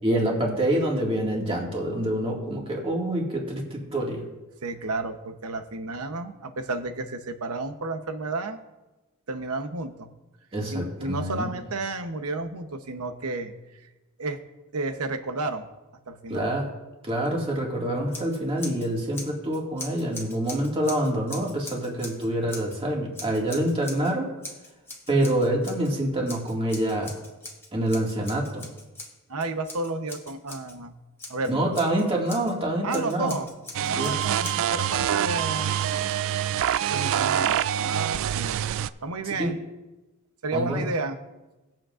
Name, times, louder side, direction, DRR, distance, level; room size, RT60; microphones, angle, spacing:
voice 1, 0.0-4.2 10.5-11.5 16.3-16.7 17.0-24.3 25.1-27.1 27.7-28.7 31.5-33.3 33.9-34.2 39.4-39.5 40.5-40.8, right 1 dB, 25° right, -2 dB, 2.1 m, -26 dB
voice 2, 4.6-8.6 9.3-10.1 10.7-13.5 14.2-14.4 14.7-15.7 16.1-16.5 29.3-31.0 31.3-31.7 32.8-33.5 33.8-35.7 36.9-38.6 39.0-39.5 40.4-41.2, right 3 dB, 85° right, 8 dB, 0.9 m, -31 dB
Scissors, 18.1-18.9 19.1-22.8 23.1-24.1 24.4-25.9 26.3-30.7 31.2-32.5 32.9-34.9, left 2 dB, 10° left, 1.4 m, -42 dB
sound 1, 33.7-38.9, right 10 dB, 65° right, 0.3 m, -25 dB
19.5 x 7.5 x 2.5 m, 1.1 s
head